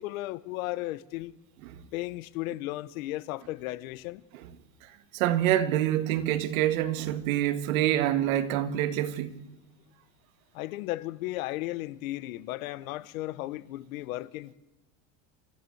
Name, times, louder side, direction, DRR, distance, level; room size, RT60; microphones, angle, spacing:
voice 1, 0.0-1.3 1.9-4.2 10.5-14.5, left 17 dB, 90° left, 1.1 m, -35 dB
voice 2, 5.1-9.5, right 12 dB, 85° right, 1.9 m, -26 dB
28.0 x 14.5 x 8.0 m
cardioid pair, 170°, 40 cm